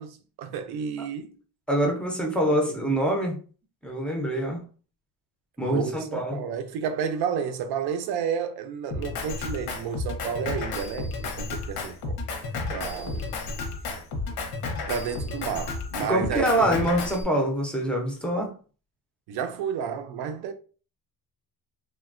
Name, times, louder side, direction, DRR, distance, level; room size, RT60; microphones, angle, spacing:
voice 1, 0.0-1.4 2.5-2.8 5.6-12.2 12.7-13.3 14.9-16.9 19.3-20.5, right 7 dB, 90° right, 0.6 m, -31 dB
voice 2, 1.7-3.4 3.8-4.6 5.6-6.4 16.1-18.5, right 1 dB, 5° left, 0.4 m, -25 dB
Drum kit, 8.9-17.2, left 3 dB, 85° left, 0.8 m, -32 dB
3.1 x 2.2 x 2.4 m
cardioid pair, 160°, 37 cm